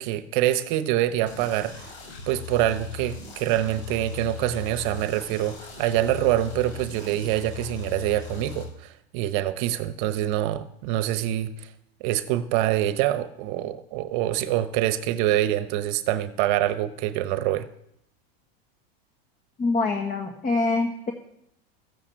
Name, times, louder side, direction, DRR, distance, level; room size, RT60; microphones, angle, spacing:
voice 1, 0.0-1.9 2.3-11.7 12.0-17.7, right 13 dB, 55° right, 11 dB, 1.0 m, -25 dB
sound 1, 1.3-8.6, left 6 dB, 80° left, 6.2 m, -39 dB
voice 2, 19.6-21.1, left 3 dB, 25° left, 5 dB, 1.6 m, -25 dB
14.5 x 8.7 x 8.0 m, 0.76 s
supercardioid pair, 125°, 31 cm